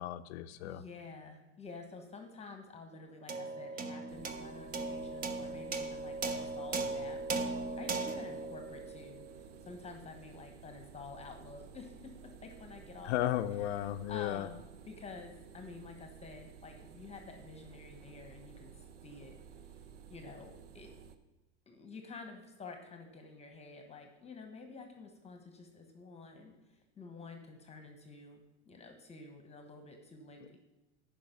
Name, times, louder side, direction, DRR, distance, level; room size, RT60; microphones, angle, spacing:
voice 1, 0.0-0.8 13.0-14.5, left 13 dB, 70° left, 11 dB, 0.5 m, -34 dB
voice 2, 0.6-7.2 7.8-9.2 9.7-11.9 12.4-13.2 14.1-18.7 19.0-19.3 20.1-20.9 21.7-26.5 27.0-28.4 28.7-30.6, left 4 dB, 20° left, 5 dB, 1.1 m, -49 dB
sound 1, 3.3-9.9, right 3 dB, 25° right, 0.8 m, -38 dB
sound 2, 4.1-21.2, right 7 dB, 85° right, 0.8 m, -54 dB
9.6 x 5.2 x 5.3 m, 1.0 s
supercardioid pair, 130°, 34 cm